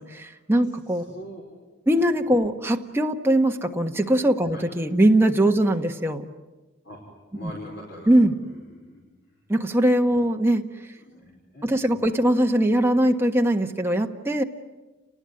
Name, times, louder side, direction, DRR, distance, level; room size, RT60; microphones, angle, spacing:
voice 1, 0.0-1.0 1.9-6.2 7.4-7.5 8.1-8.4 9.5-10.6 11.6-14.4, right 1 dB, 10° right, 3 dB, 1.4 m, -21 dB
voice 2, 1.1-1.4 1.9-2.2 4.5-4.6 6.8-7.0 7.3-8.1 8.4-9.0 10.1-10.3 11.0-11.2 11.5-12.3, equal, 55° left, -1 dB, 5.0 m, -42 dB
30.0 x 20.0 x 9.7 m, 1.2 s
head